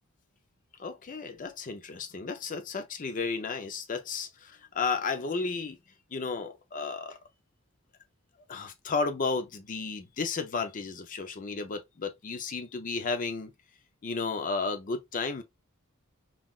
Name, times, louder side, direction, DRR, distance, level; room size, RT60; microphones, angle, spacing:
voice 1, 0.8-5.8 6.1-7.2 8.5-13.5 14.0-15.4, left 4 dB, 40° left, 0.5 m, -33 dB
3.6 x 2.5 x 2.3 m
head